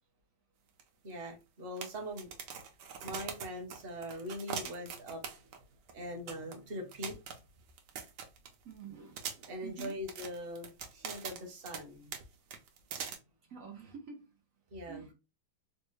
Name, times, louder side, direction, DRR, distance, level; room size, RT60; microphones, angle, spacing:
sound 1, 0.8-0.9 1.1-1.2 1.8-5.6 5.9-6.0 6.3-6.5 6.9-8.7 9.2-11.8 12.1-12.2 12.5-13.1, right 7 dB, 65° right, 1.2 m, -42 dB
voice 1, 1.0-2.3 3.0-5.5 5.9-7.2 9.5-12.1 14.7-15.1, equal, 40° right, 0.8 m, -42 dB
voice 2, 8.6-10.0 13.5-14.3 14.9-15.1, right 6 dB, 80° right, 0.7 m, -48 dB
4.3 x 2.1 x 3.0 m
omnidirectional pair, 2.2 m